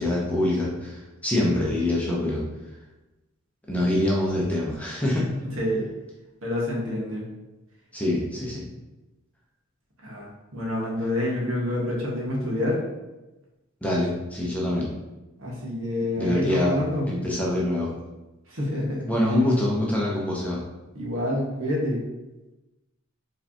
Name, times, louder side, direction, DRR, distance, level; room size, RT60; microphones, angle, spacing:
voice 1, 0.0-2.4 3.7-5.3 7.9-8.6 13.8-14.9 16.2-17.9 19.1-20.6, left 1 dB, 5° left, -4 dB, 0.7 m, -25 dB
voice 2, 5.4-5.9 6.4-7.2 10.0-12.8 15.4-17.0 18.5-19.1 20.9-22.0, left 1 dB, 65° right, -3 dB, 1.3 m, -27 dB
4.7 x 3.3 x 2.9 m, 1.0 s
head